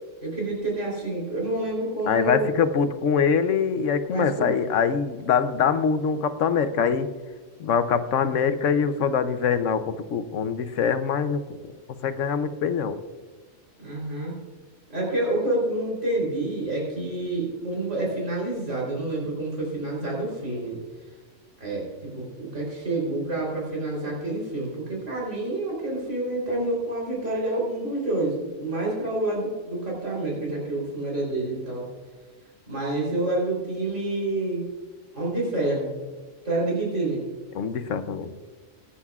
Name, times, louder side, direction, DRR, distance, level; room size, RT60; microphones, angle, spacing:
voice 1, 0.2-2.5 4.1-4.6 13.8-14.4 14.9-20.8 21.6-31.9 32.7-34.6 35.1-35.9 36.4-37.2, right 2 dB, 65° right, -3 dB, 4.0 m, -28 dB
voice 2, 2.1-7.1 7.6-11.4 12.0-13.0 37.5-38.3, left 6 dB, 70° left, 11 dB, 1.1 m, -24 dB
21.0 x 10.0 x 2.4 m, 1.4 s
omnidirectional pair, 1.3 m